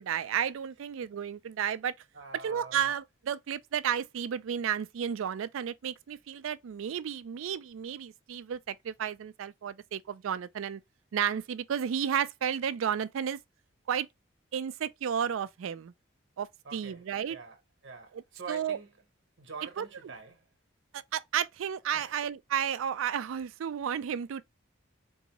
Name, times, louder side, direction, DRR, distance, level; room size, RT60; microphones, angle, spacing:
voice 1, 0.0-1.9 2.4-10.8 11.1-13.4 13.9-14.1 14.5-15.9 16.4-17.4 18.5-18.8 19.8-19.9 20.9-24.4, right 8 dB, 85° right, 0.4 m, -32 dB
voice 2, 2.1-2.9 16.6-18.9 19.4-20.5 21.9-22.2, right 4 dB, 70° right, 0.9 m, -46 dB
3.9 x 2.7 x 2.8 m
head